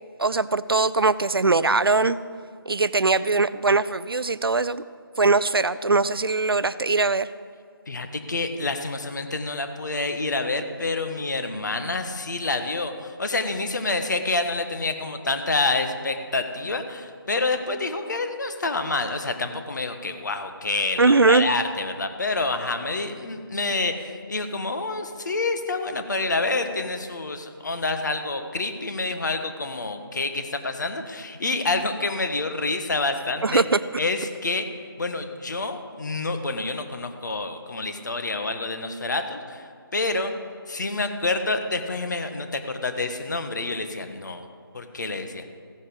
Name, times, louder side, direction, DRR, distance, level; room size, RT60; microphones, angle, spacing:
voice 1, 0.2-2.2 2.7-4.8 5.2-7.3 21.0-21.5 33.4-33.8, right 3 dB, 75° right, 16 dB, 0.6 m, -21 dB
voice 2, 7.9-33.6 34.0-34.7 35.0-40.3 40.7-44.5 44.7-45.4, left 3 dB, 50° left, 7 dB, 1.4 m, -28 dB
15.5 x 9.9 x 5.3 m, 2.1 s
figure-of-eight pair, 160°, 13 cm